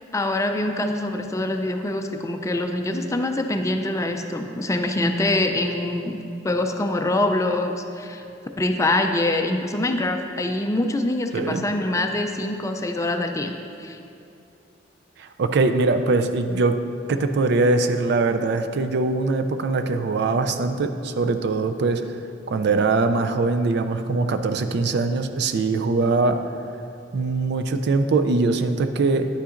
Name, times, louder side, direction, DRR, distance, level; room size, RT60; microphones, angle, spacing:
voice 1, 0.1-8.2 8.6-13.5 13.8-14.0, left 1 dB, 15° left, 5 dB, 0.4 m, -24 dB
voice 2, 11.3-11.7 15.2-16.7 17.1-22.2 22.5-26.4 27.1-29.3, right 3 dB, 65° right, 8 dB, 0.4 m, -22 dB
10.0 x 8.4 x 2.5 m, 2.6 s
head